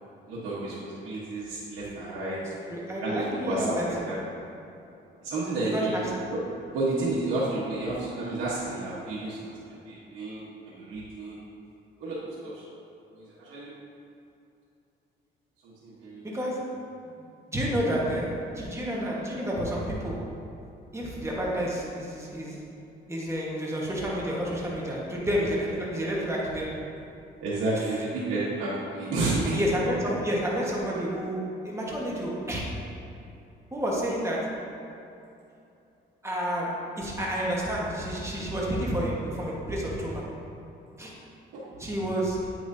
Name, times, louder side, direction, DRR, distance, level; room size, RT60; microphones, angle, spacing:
voice 1, 0.3-2.4 3.0-4.2 5.2-5.9 6.3-6.4 6.7-9.5 9.9-11.4 12.0-12.6 13.1-13.7 15.6-16.4 27.4-29.6 30.1-30.2 41.5-41.6, right 2 dB, 90° right, -9 dB, 1.3 m, -31 dB
voice 2, 2.7-4.1 5.6-6.1 16.2-16.7 17.5-20.3 20.9-22.6 23.1-26.8 27.7-27.8 29.5-32.8 33.7-34.6 36.2-40.3 41.0-41.1 41.8-42.4, equal, 15° right, -4 dB, 1.4 m, -30 dB
8.5 x 6.0 x 2.7 m, 2.7 s
cardioid pair, 90°, 20 cm